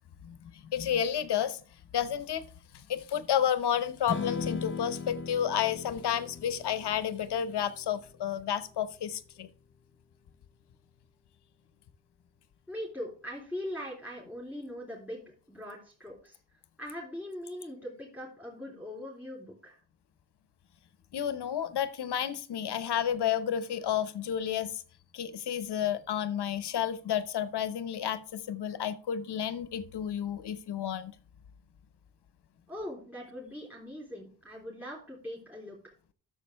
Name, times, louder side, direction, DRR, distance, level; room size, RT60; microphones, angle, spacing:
voice 1, 0.2-1.6 1.9-2.4 2.7-9.5 21.1-24.8 25.1-31.1, left 9 dB, 60° left, 1.0 m, -31 dB
Strum, 4.1-10.4, left 5 dB, 25° left, 0.8 m, -40 dB
voice 2, 12.7-15.2 15.5-16.4 16.8-19.8 32.7-35.8, left 1 dB, 5° right, 3.5 m, -41 dB
11.5 x 7.1 x 3.4 m
cardioid pair, 125°, 44 cm